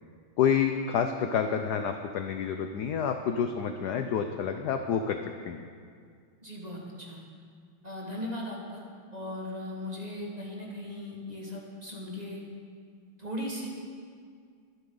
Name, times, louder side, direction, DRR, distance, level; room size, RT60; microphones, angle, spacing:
voice 1, 0.4-5.2 5.4-5.6, left 7 dB, 70° left, 6 dB, 0.9 m, -28 dB
voice 2, 6.4-7.2 7.8-8.8 9.1-12.4 13.2-13.7, left 1 dB, 20° right, -3 dB, 1.7 m, -38 dB
22.5 x 8.1 x 3.9 m, 2.1 s
omnidirectional pair, 2.3 m